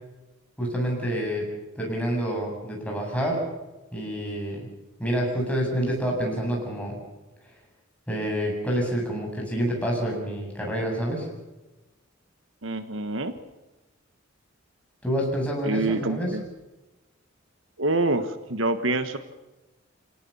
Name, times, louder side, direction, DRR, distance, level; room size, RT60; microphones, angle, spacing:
voice 1, 0.6-1.5 1.8-3.4 3.9-4.7 5.0-7.0 8.1-11.3 15.0-16.3, equal, 5° left, -1 dB, 7.9 m, -27 dB
voice 2, 12.6-13.3 15.6-16.4 17.8-19.2, right 2 dB, 70° right, 10 dB, 1.4 m, -26 dB
27.5 x 18.0 x 7.1 m, 1.1 s
head